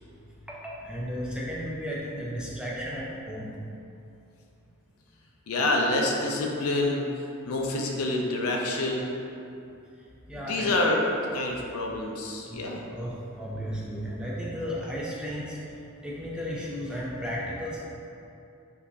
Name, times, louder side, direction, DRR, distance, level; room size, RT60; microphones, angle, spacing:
voice 1, 0.5-3.5 10.3-11.0 12.5-12.6 12.9-15.6 16.0-17.8, equal, 5° right, -6 dB, 0.4 m, -34 dB
voice 2, 5.5-7.1 7.4-9.2 10.3-12.8, left 2 dB, 90° left, 0 dB, 0.5 m, -27 dB
2.9 x 2.7 x 3.4 m, 2.7 s
head